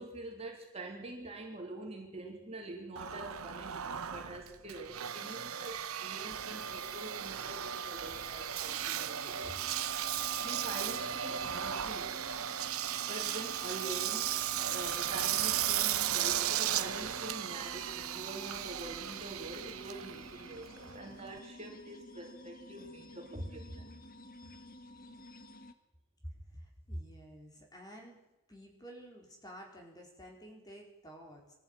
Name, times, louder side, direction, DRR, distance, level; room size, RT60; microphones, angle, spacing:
voice 1, 0.0-9.5 10.4-12.2 13.1-14.3 14.7-23.9, right 2 dB, 25° right, 0 dB, 3.5 m, -45 dB
Engine, 3.0-21.4, right 10 dB, 75° right, 0.9 m, -36 dB
sound 1, 8.6-25.7, left 1 dB, 40° left, 1.4 m, -53 dB
voice 2, 26.2-28.2 28.5-31.5, equal, 15° left, 0 dB, 4.4 m, -49 dB
23.0 x 14.0 x 9.2 m, 0.94 s
head